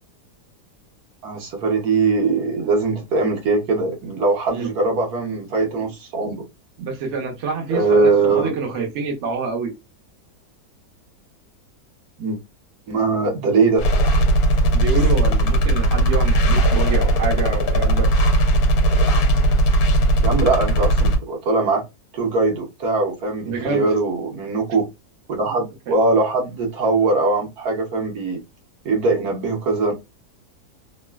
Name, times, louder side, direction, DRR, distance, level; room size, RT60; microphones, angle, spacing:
voice 1, 1.2-6.4 7.7-8.5 12.2-12.4 12.9-13.9 20.2-21.8 22.1-24.9 25.3-28.4 28.8-29.9, right 3 dB, 70° right, 1.3 m, -21 dB
voice 2, 6.8-9.7 14.7-18.1 23.4-23.9 25.9-26.0, right 4 dB, 55° right, 1.0 m, -27 dB
sound 1, 13.8-21.2, right 1 dB, 70° left, 1.1 m, -17 dB
3.1 x 2.3 x 2.2 m
omnidirectional pair, 1.7 m